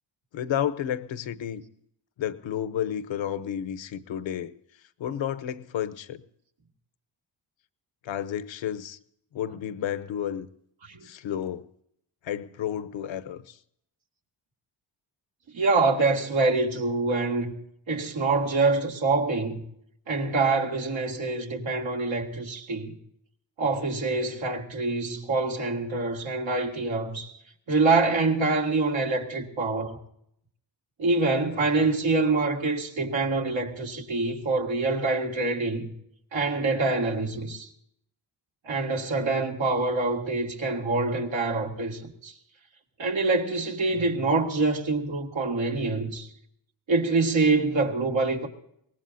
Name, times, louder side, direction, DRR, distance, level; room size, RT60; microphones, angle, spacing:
voice 1, 0.3-1.6 2.2-4.5 5.0-6.2 8.0-9.0 9.3-10.5 11.0-11.7 12.2-13.6, left 10 dB, 75° left, 1.0 m, -31 dB
voice 2, 15.5-17.5 17.9-19.6 20.1-22.9 23.6-27.3 27.7-30.0 31.0-35.9 36.3-37.7 38.7-42.3 43.0-46.3 46.9-48.5, right 3 dB, 75° right, 2.5 m, -25 dB
23.0 x 19.0 x 2.7 m
cardioid pair, 60°, 46 cm